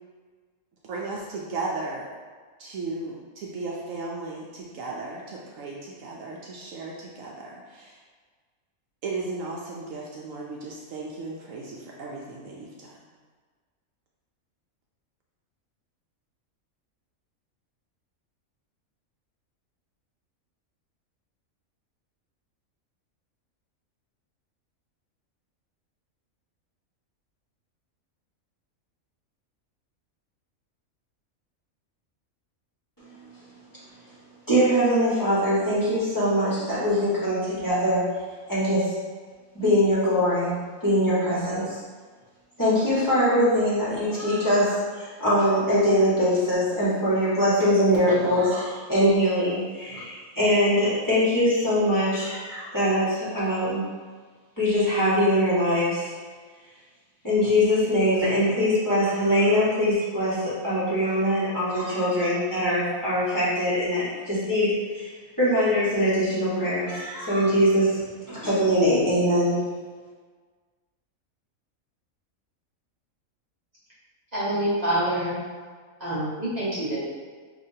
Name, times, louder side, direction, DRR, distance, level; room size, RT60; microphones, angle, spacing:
voice 1, 0.9-2.1 2.6-8.0 9.0-13.0, right 3 dB, 70° right, -3 dB, 0.9 m, -35 dB
voice 2, 34.5-38.1 38.5-38.9 39.5-41.8 42.6-53.8 54.6-56.1 57.2-65.1 65.4-68.0 68.3-69.6, equal, 15° left, -11 dB, 1.4 m, -22 dB
voice 3, 74.3-75.3 76.0-77.0, right 1 dB, 30° right, -9 dB, 1.0 m, -26 dB
5.7 x 2.9 x 2.7 m, 1.5 s
omnidirectional pair, 1.5 m